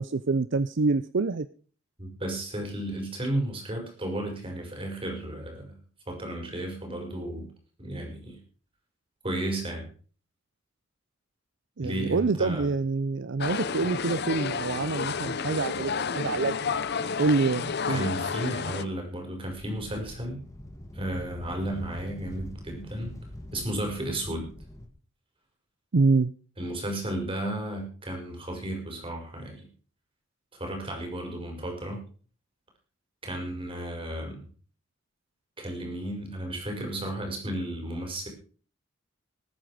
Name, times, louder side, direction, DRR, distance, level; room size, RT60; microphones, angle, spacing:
voice 1, 0.0-1.5 11.8-16.8 17.2-18.1 25.9-26.3, right 3 dB, 65° right, 14 dB, 0.6 m, -26 dB
voice 2, 2.0-5.7 6.1-7.5 7.8-8.4 9.2-9.9 11.8-12.7 17.9-20.4 20.9-23.1 23.5-24.5 26.6-29.7 30.5-32.0 33.2-34.4 35.6-38.3, right 1 dB, 25° right, 2 dB, 5.5 m, -33 dB
sound 1, 13.4-18.8, left 5 dB, 55° left, 0.8 m, -31 dB
sound 2, 19.5-24.9, left 1 dB, 15° left, 2.1 m, -43 dB
20.0 x 9.1 x 5.0 m, 0.41 s
head